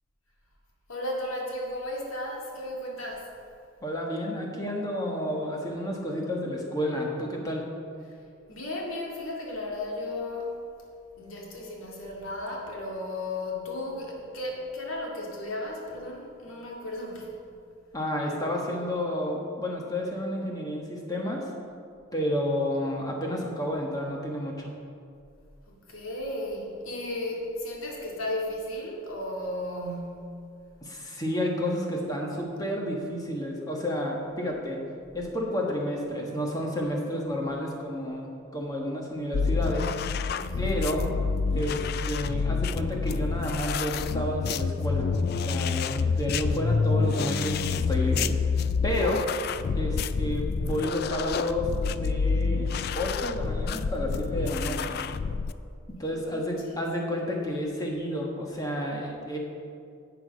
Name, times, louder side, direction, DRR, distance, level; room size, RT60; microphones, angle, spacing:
voice 1, 0.9-3.3 8.0-8.1 8.5-10.6 11.2-17.3 25.7-30.4 40.4-40.8 56.0-56.9, left 1 dB, 85° left, -2 dB, 2.2 m, -35 dB
voice 2, 3.8-7.7 17.9-21.5 22.1-24.7 30.8-34.8 35.1-39.9 40.6-41.0 41.5-45.1 45.4-48.3 48.8-49.2 49.8-52.7 52.9-55.0 56.0-59.4, equal, 20° left, -1 dB, 1.4 m, -30 dB
sound 1, 39.3-55.5, left 5 dB, 50° left, 0.3 m, -28 dB
11.0 x 8.1 x 5.2 m, 2.4 s
head